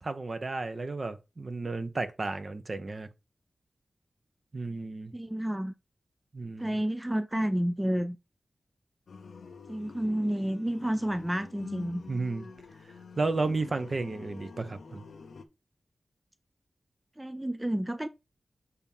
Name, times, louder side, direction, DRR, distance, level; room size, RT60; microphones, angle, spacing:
voice 1, 0.0-3.1 4.5-5.1 6.3-6.8 12.1-12.5 13.2-15.0, right 3 dB, 50° right, 0.9 m, -33 dB
voice 2, 5.1-5.7 6.6-8.2 9.7-12.0 17.2-18.1, right 1 dB, 15° right, 0.5 m, -30 dB
sound 1, 9.1-15.4, left 5 dB, 85° left, 0.7 m, -47 dB
6.9 x 2.8 x 5.3 m
wide cardioid pair, 65°, 0 cm